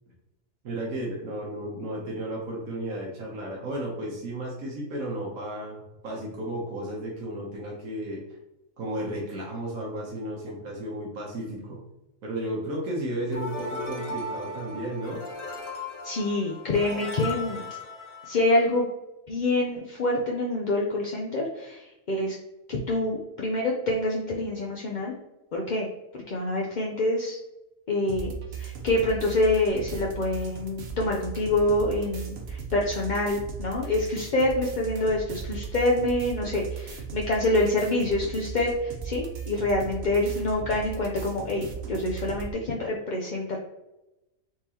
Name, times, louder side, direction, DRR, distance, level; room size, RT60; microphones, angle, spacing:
voice 1, 0.6-8.2 8.8-11.8 12.2-15.2, right 1 dB, 85° right, -3 dB, 1.4 m, -33 dB
sound 1, 13.3-18.8, left 2 dB, 75° left, 1.5 m, -37 dB
voice 2, 16.0-17.6 18.3-18.9 19.3-22.4 22.7-25.1 25.5-25.9 26.1-27.4 27.9-28.3 28.6-43.6, left 2 dB, 55° left, -2 dB, 0.5 m, -26 dB
sound 2, 28.1-42.5, right 6 dB, 55° right, 0.9 m, -37 dB
4.6 x 3.6 x 2.9 m, 0.96 s
omnidirectional pair, 1.4 m